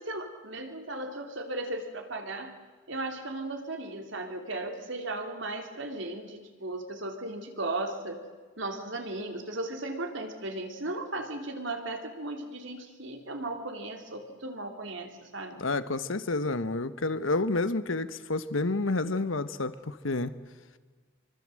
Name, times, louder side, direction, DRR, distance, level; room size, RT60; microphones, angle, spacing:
voice 1, 0.0-2.5 2.9-8.2 8.6-15.6, right 2 dB, 70° right, 3.2 m, -36 dB
voice 2, 15.6-20.3, left 2 dB, 85° left, 1.2 m, -29 dB
26.0 x 24.0 x 7.7 m
head